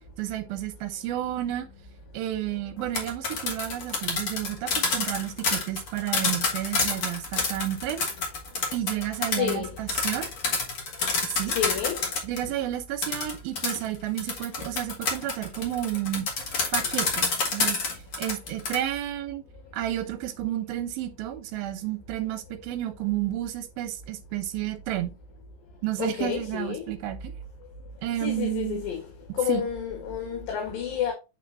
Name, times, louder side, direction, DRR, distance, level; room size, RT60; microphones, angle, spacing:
voice 1, 0.2-1.7 2.1-8.0 8.7-10.3 11.2-11.6 12.2-16.3 16.7-17.8 18.2-19.4 19.7-25.1 25.8-27.4 28.0-28.9 29.5-29.6, right 13 dB, 85° right, 2.8 m, -31 dB
sound 1, 2.8-12.4 13.0-18.8, left 4 dB, 45° left, 2.3 m, -28 dB
voice 2, 9.3-9.7 11.5-12.1 19.5-19.6 26.0-26.8 28.2-29.0 29.3-31.1, left 9 dB, 75° left, 3.3 m, -30 dB
9.0 x 4.3 x 2.8 m
omnidirectional pair, 4.2 m